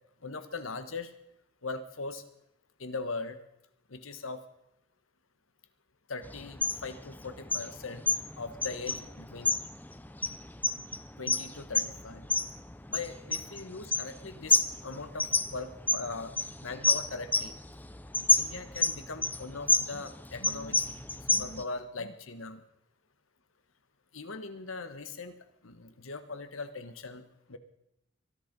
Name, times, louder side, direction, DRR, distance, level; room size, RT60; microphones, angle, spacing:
voice 1, 0.2-1.1 1.6-2.3 2.8-3.4 3.9-4.4 6.1-8.0 8.4-9.6 11.2-12.3 12.9-16.4 16.6-17.6 18.4-21.0 21.2-22.6 24.1-27.6, left 3 dB, 85° left, 11 dB, 1.4 m, -40 dB
sound 1, 6.2-21.6, left 3 dB, 10° left, 0.5 m, -30 dB
23.5 x 11.0 x 5.4 m, 0.84 s
head